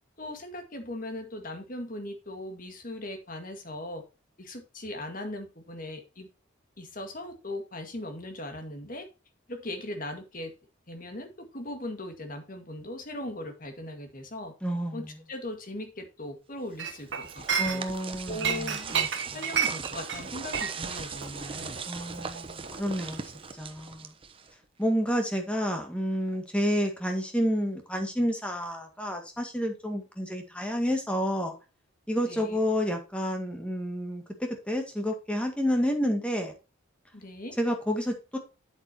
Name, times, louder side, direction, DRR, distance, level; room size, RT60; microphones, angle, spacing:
voice 1, 0.2-4.0 4.4-6.3 6.8-9.1 9.5-10.5 10.9-14.5 14.9-17.5 17.7-17.8 18.3-18.9 19.3-21.8 32.3-32.6 37.1-37.6, left 1 dB, 45° left, 1.9 m, -39 dB
voice 2, 14.6-15.0 17.6-19.1 21.9-23.2 23.6-24.1 24.8-31.5 32.1-36.5 37.6-38.4, equal, 5° left, 1.9 m, -29 dB
sound 1, 16.8-24.6, right 5 dB, 25° right, 0.9 m, -40 dB
Chink clink, 16.8-18.1 18.4-23.0 23.3-23.5, right 7 dB, 60° right, 1.2 m, -31 dB
8.3 x 8.2 x 2.9 m
head